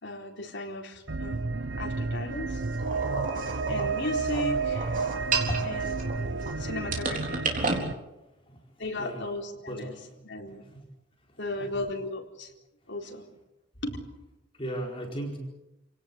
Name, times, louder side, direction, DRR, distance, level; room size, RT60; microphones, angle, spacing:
voice 1, 0.0-1.4 1.8-2.6 3.7-5.0 5.6-5.9 6.2-7.4 8.8-9.9 10.2-10.6 11.4-12.5 12.9-13.3 13.8-14.0, left 2 dB, 60° left, 1 dB, 4.1 m, -36 dB
sound 1, 1.1-7.9, right 4 dB, 65° right, 0.9 m, -31 dB
sound 2, 2.8-6.5 6.9-7.8, right 4 dB, 40° right, 4.1 m, -32 dB
voice 2, 8.4-9.2 9.7-10.0 10.5-10.8 11.3-11.7 14.5-15.4, right 1 dB, 25° left, 0 dB, 4.4 m, -37 dB
28.5 x 17.5 x 8.3 m, 0.97 s
head